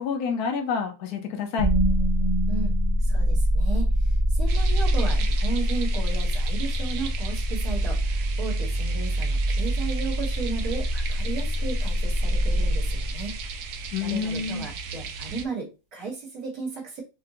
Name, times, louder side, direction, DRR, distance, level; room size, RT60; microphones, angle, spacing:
voice 1, 0.0-1.7 13.9-14.7, left 6 dB, 75° left, 1.2 m, -28 dB
sound 1, 1.6-13.7, equal, 15° right, 1.0 m, -24 dB
voice 2, 2.5-13.4 14.0-17.0, right 4 dB, 60° right, 1.8 m, -35 dB
sound 2, 4.5-15.4, right 5 dB, 85° right, 1.2 m, -37 dB
5.1 x 2.2 x 2.8 m
omnidirectional pair, 1.7 m